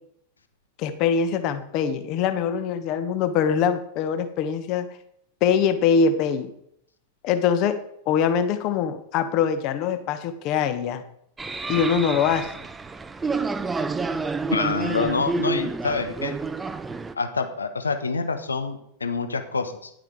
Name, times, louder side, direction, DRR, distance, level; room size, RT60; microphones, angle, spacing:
voice 1, 0.8-4.9 5.4-6.5 7.2-7.8 8.1-11.0 11.7-12.5, left 7 dB, 40° left, 10 dB, 1.2 m, -23 dB
sound 1, 11.4-17.1, right 3 dB, 15° right, 0.6 m, -29 dB
voice 2, 14.5-16.3 17.1-19.9, left 4 dB, 75° left, 8 dB, 1.2 m, -27 dB
11.0 x 9.0 x 4.8 m, 0.71 s
figure-of-eight pair, 90°, 0 cm